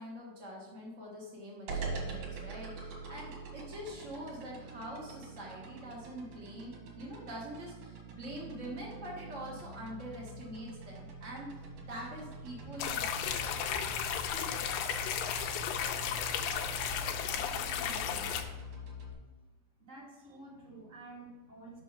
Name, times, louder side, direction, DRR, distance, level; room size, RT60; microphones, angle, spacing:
voice 1, 0.0-11.5 11.9-13.6, equal, 85° right, -4 dB, 0.6 m, -45 dB
sound 1, 1.7-19.1, right 3 dB, 60° right, 2.6 m, -45 dB
sound 2, 12.8-18.4, left 8 dB, 90° left, 2.3 m, -34 dB
voice 2, 17.8-18.3 19.8-21.8, right 2 dB, 25° right, -6 dB, 1.9 m, -50 dB
5.6 x 5.4 x 5.8 m, 1.2 s
omnidirectional pair, 3.9 m